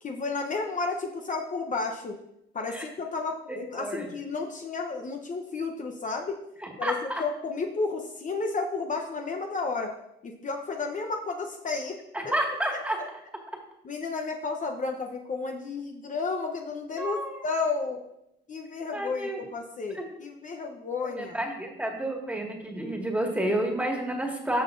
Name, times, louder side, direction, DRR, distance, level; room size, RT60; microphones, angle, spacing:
voice 1, 0.0-2.2 2.5-6.4 6.8-9.9 10.2-12.0 13.0-13.1 13.8-18.0 18.5-21.3, left 4 dB, 40° left, 3 dB, 0.8 m, -32 dB
voice 2, 3.5-4.1 6.6-7.2 12.1-13.0 17.0-17.4 18.9-19.4 19.9-20.0 21.0-24.6, right 1 dB, 5° right, 0 dB, 1.9 m, -30 dB
14.0 x 5.7 x 2.6 m, 0.82 s
cardioid pair, 90°, 20 cm